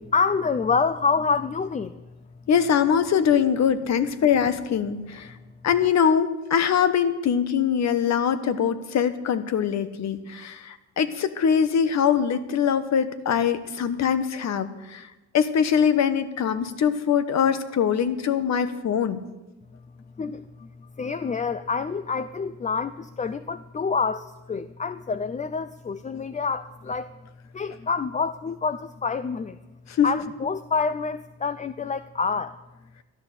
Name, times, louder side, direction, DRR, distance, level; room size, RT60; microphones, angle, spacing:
voice 1, 0.1-2.0 20.2-27.1 27.5-29.6 30.0-32.6, left 5 dB, 25° left, 14 dB, 0.5 m, -27 dB
voice 2, 2.5-5.3 5.6-15.0 15.3-19.2 30.0-30.1, left 7 dB, 65° left, 12 dB, 1.2 m, -23 dB
13.0 x 11.0 x 6.7 m, 1.1 s
cardioid pair, 90°, 30 cm